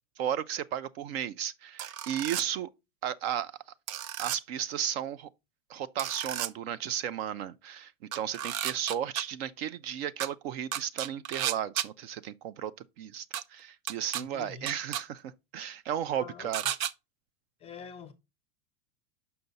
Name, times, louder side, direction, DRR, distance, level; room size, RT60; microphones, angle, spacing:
voice 1, 0.2-2.7 3.0-3.5 4.2-5.3 5.7-12.7 13.0-16.6, right 9 dB, 50° right, 0.4 m, -34 dB
sound 1, 1.8-2.4 3.9-4.4 6.0-6.5 8.1-9.2 10.2-10.3 10.7-11.9 13.3-13.4 13.9-14.2 14.7-15.0 16.5-16.9, right 11 dB, 90° right, 0.6 m, -33 dB
voice 2, 14.2-14.7 16.1-16.5 17.6-18.1, left 6 dB, 15° left, 0.5 m, -45 dB
6.8 x 5.6 x 3.9 m
supercardioid pair, 155°, 40 cm